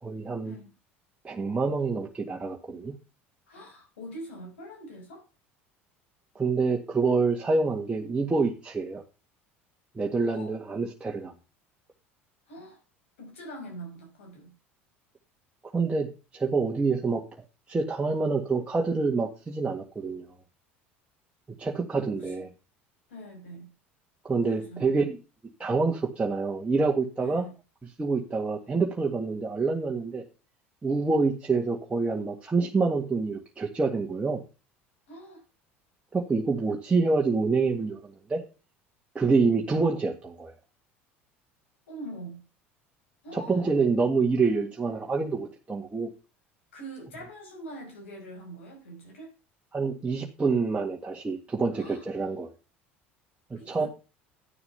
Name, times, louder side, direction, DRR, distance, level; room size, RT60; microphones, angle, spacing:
voice 1, 0.0-0.6 1.2-2.9 6.4-9.0 10.0-11.3 15.7-16.1 16.3-17.2 17.7-20.3 21.6-22.5 24.2-25.2 25.6-27.5 28.0-30.2 30.8-34.4 36.1-38.4 39.2-40.5 43.3-46.1 49.7-52.5 53.5-53.9, right 4 dB, 20° right, 1.9 m, -27 dB
voice 2, 3.5-5.3 10.3-10.5 12.5-12.8 13.2-14.6 22.1-22.3 23.1-23.7 24.3-24.9 27.2-27.6 35.1-35.4 41.9-42.4 43.2-43.6 46.7-49.4 51.7-52.0 53.5-53.9, right 1 dB, 85° left, 5.7 m, -43 dB
11.5 x 6.8 x 5.7 m
hypercardioid pair, 80°, 7 cm